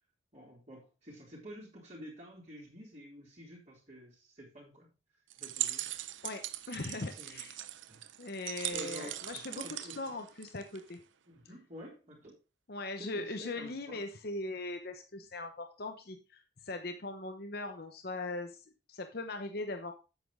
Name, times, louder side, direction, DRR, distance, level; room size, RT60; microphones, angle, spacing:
voice 1, 0.3-4.9 5.4-5.9 7.2-8.0 8.4-10.2 11.3-12.3 13.0-14.0, equal, 35° right, 2.9 m, -50 dB
sound 1, 5.3-10.9, right 13 dB, 80° right, 0.6 m, -40 dB
voice 2, 6.2-7.6 8.2-9.6 10.0-11.0 12.7-19.9, left 2 dB, 50° left, 0.9 m, -40 dB
8.0 x 7.7 x 3.6 m
head